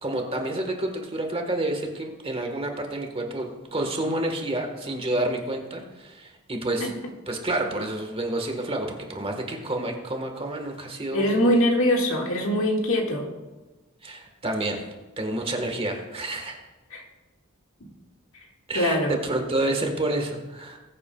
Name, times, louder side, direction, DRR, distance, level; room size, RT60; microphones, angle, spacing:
voice 1, 0.0-6.9 7.3-11.3 14.0-14.8 15.2-16.6 18.7-20.8, right 1 dB, 25° right, 3 dB, 1.5 m, -29 dB
voice 2, 11.1-13.3 16.9-17.0 18.7-19.2, equal, 70° left, 0 dB, 1.9 m, -22 dB
20.0 x 8.4 x 2.3 m, 1.2 s
head